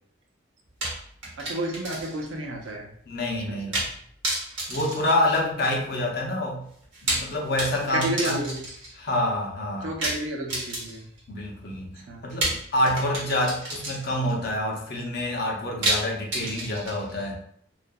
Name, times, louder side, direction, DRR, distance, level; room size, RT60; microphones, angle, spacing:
sound 1, 0.8-2.3 2.6-2.7 3.7-4.0 4.2-5.8 6.8-9.0 10.0-11.2 12.4-14.3 15.8-17.2, right 1 dB, 70° right, 1.0 m, -30 dB
voice 1, 1.4-2.9 3.5-3.9 7.9-8.6 9.8-11.1 12.1-12.6, right 1 dB, 90° right, 1 dB, 0.6 m, -31 dB
voice 2, 3.1-3.8 4.7-6.6 7.0-8.4 8.9-9.9 11.3-17.4, left 1 dB, 55° left, 0 dB, 0.6 m, -27 dB
2.7 x 2.4 x 2.2 m, 0.64 s
head